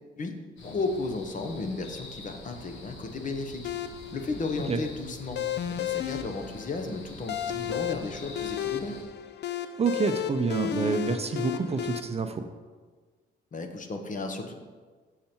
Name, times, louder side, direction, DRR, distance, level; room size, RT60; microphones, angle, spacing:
sound 1, 0.6-9.0, left 2 dB, 80° left, 1.4 m, -46 dB
voice 1, 0.6-3.6 4.1-5.4 5.7-9.0 13.5-14.5, left 3 dB, 40° left, 5 dB, 1.0 m, -34 dB
sound 2, 3.6-12.0, left 9 dB, 60° left, 0.5 m, -33 dB
sound 3, 3.8-4.4 4.7-5.1 5.6-6.3 6.5-6.9, right 1 dB, 10° left, 2.5 m, -53 dB
voice 2, 9.8-12.4, right 4 dB, 30° right, 8 dB, 0.6 m, -28 dB
6.9 x 6.6 x 4.4 m, 1.5 s
cardioid pair, 90°, 20 cm